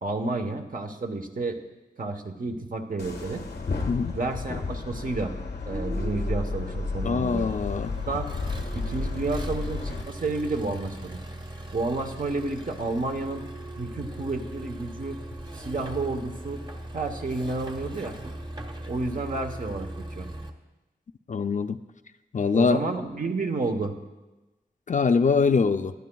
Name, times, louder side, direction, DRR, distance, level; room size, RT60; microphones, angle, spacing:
voice 1, 0.0-1.6 2.0-3.5 4.1-5.3 5.7-7.5 8.1-8.3 8.7-11.2 11.7-13.5 13.8-15.2 15.5-16.6 16.9-18.2 18.9-20.3 22.5-24.0, right 3 dB, 55° right, 4 dB, 1.0 m, -30 dB
sound 1, 3.0-10.0, left 3 dB, 90° left, 1.1 m, -32 dB
voice 2, 7.0-7.9 21.3-21.8 22.3-22.8 24.9-25.9, left 5 dB, 50° left, 9 dB, 0.4 m, -23 dB
Accelerating revving vroom, 7.3-20.5, right 1 dB, 30° right, 1.0 m, -39 dB
20.0 x 10.5 x 2.3 m, 1.1 s
wide cardioid pair, 90°, 17 cm